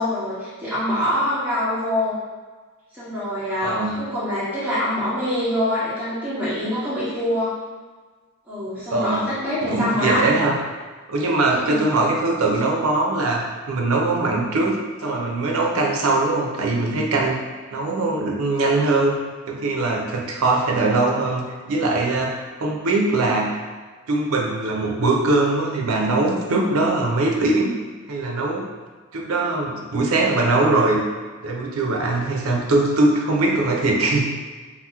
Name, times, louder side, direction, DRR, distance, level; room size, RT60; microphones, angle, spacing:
voice 1, 0.0-2.1 2.9-7.5 8.5-10.2 11.5-11.8, left 1 dB, 5° right, -12 dB, 1.2 m, -25 dB
voice 2, 3.6-4.1 8.9-9.3 9.6-10.6 11.1-17.4 17.7-19.2 19.5-23.6 24.1-27.7 28.1-28.7 29.1-31.0 31.4-34.3, right 2 dB, 75° right, 1 dB, 0.5 m, -21 dB
2.9 x 2.0 x 3.4 m, 1.4 s
head